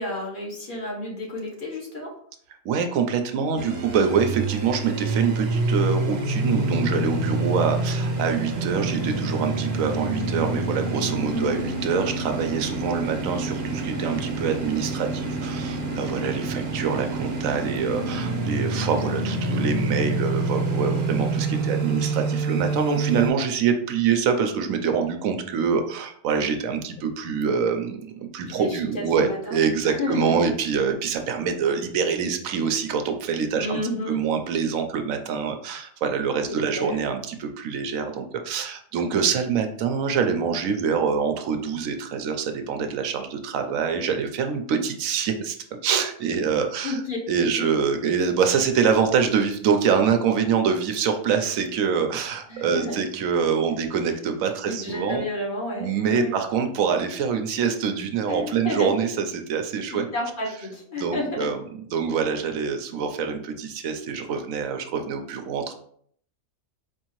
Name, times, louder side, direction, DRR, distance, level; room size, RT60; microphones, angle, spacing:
voice 1, 0.0-2.1 11.3-11.6 28.5-30.5 33.5-34.2 36.7-37.0 46.8-47.2 47.6-47.7 52.5-53.0 54.7-56.3 58.3-58.9 59.9-61.3, left 1 dB, 45° left, -2 dB, 1.1 m, -31 dB
voice 2, 2.6-33.8 34.1-45.6 45.8-47.0 47.3-55.2 55.8-60.1 61.0-61.6 61.9-65.7, right 6 dB, 85° right, 6 dB, 1.0 m, -25 dB
sound 1, 3.6-23.3, right 2 dB, 55° right, 1.0 m, -27 dB
4.7 x 2.7 x 3.0 m, 0.62 s
omnidirectional pair, 1.4 m